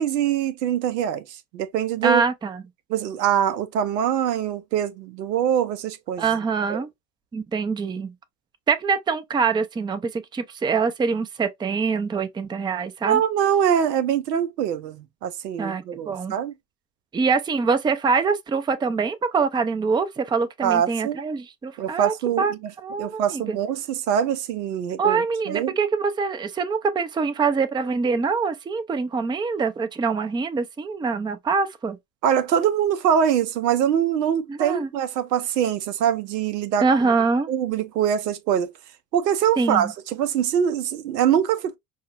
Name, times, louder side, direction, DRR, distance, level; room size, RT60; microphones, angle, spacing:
voice 1, 0.0-2.2 2.9-6.3 6.7-6.8 13.0-16.5 20.6-21.2 21.8-22.7 23.0-25.7 32.2-37.1 37.5-38.7 39.1-41.7, right 9 dB, 85° right, 0.6 m, -23 dB
voice 2, 2.0-2.6 6.2-6.9 7.3-8.1 8.7-13.2 15.6-16.4 17.1-22.5 22.8-23.6 25.0-32.0 34.5-34.9 36.8-37.5 39.6-39.9, right 5 dB, 10° right, 0.4 m, -24 dB
5.4 x 2.1 x 2.3 m
hypercardioid pair, 60°, 48 cm